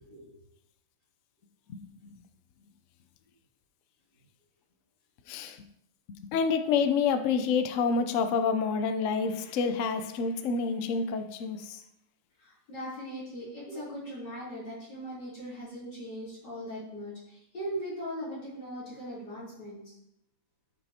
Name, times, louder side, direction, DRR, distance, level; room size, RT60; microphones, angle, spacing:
voice 1, 0.0-0.4 12.4-19.9, equal, 60° left, -9 dB, 4.2 m, -39 dB
voice 2, 1.7-2.1 5.3-5.6 6.3-11.8, left 5 dB, 85° left, 9 dB, 0.6 m, -28 dB
12.5 x 5.5 x 2.8 m, 0.80 s
omnidirectional pair, 2.1 m